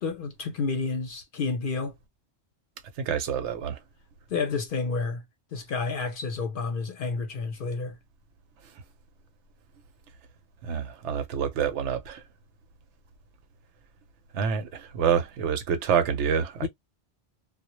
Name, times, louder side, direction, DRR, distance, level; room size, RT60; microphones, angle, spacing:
voice 1, 0.0-1.9 4.3-5.2 5.5-8.0 16.6-16.7, left 4 dB, 55° left, 0.7 m, -30 dB
voice 2, 3.0-3.8 10.6-12.2 14.3-16.7, right 7 dB, 80° right, 0.9 m, -27 dB
2.1 x 2.0 x 2.9 m
omnidirectional pair, 1.2 m